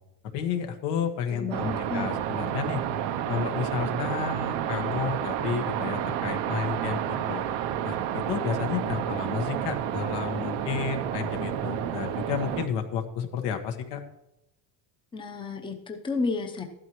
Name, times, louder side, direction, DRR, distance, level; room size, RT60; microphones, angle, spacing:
voice 1, 0.3-2.8 3.3-7.4 7.8-14.0, left 7 dB, 80° left, 5 dB, 1.6 m, -31 dB
voice 2, 1.3-2.1 15.1-16.6, left 4 dB, 10° left, 4 dB, 0.8 m, -32 dB
sound 1, 1.5-12.7, right 10 dB, 70° right, 0.9 m, -30 dB
13.5 x 12.0 x 3.1 m, 0.88 s
cardioid pair, 140°, 43 cm